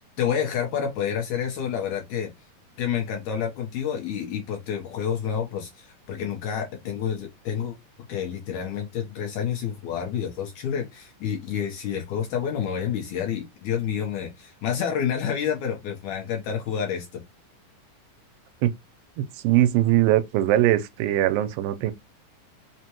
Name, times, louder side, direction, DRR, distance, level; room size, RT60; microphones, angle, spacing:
voice 1, 0.2-2.3 2.8-7.8 8.1-17.2, left 8 dB, 75° left, 1.8 m, -29 dB
voice 2, 19.2-21.9, right 13 dB, 85° right, 2.3 m, -21 dB
5.4 x 2.1 x 2.9 m
omnidirectional pair, 4.1 m